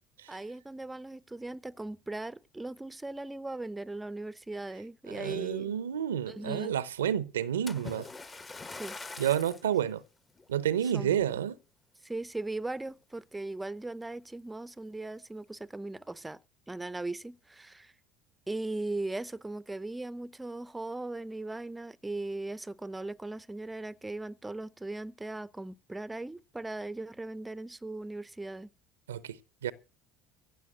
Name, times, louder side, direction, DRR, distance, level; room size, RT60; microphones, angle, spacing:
voice 1, 0.3-5.7 6.3-6.7 8.8-9.0 10.9-11.3 12.0-16.4 16.7-17.9 18.5-28.7, right 2 dB, 10° right, 0.7 m, -38 dB
voice 2, 5.1-8.1 9.2-10.0 10.5-11.6 29.1-29.7, right 10 dB, 85° right, 0.7 m, -30 dB
Splash splatter, 7.7-9.7 10.4-10.6 11.2-11.3, left 3 dB, 25° left, 1.2 m, -43 dB
15.5 x 7.1 x 7.8 m
hypercardioid pair, 70°, 0 cm